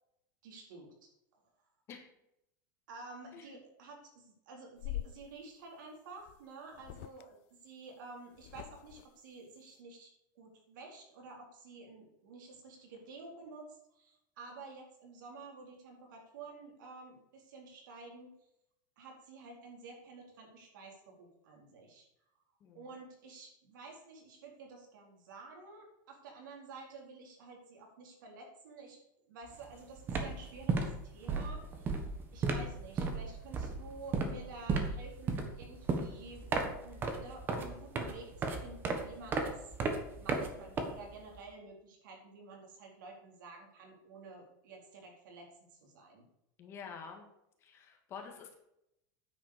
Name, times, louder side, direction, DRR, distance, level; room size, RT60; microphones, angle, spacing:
voice 1, 0.4-1.1 2.9-18.3 19.0-22.1 22.7-29.0 29.3-31.7 32.3-36.5 36.8-39.6 40.2-46.2, right 3 dB, 80° right, 1 dB, 4.3 m, -51 dB
sound 1, 4.8-5.2 6.3-6.4 6.7-7.2 8.4-9.1, left 14 dB, 40° left, 0.3 m, -43 dB
sound 2, 29.5-29.7 30.0-41.4, right 4 dB, 20° right, 1.3 m, -35 dB
voice 2, 46.6-47.2 47.6-48.5, left 6 dB, 25° left, 2 dB, 1.8 m, -48 dB
9.5 x 8.0 x 6.7 m, 0.81 s
supercardioid pair, 175°, 10 cm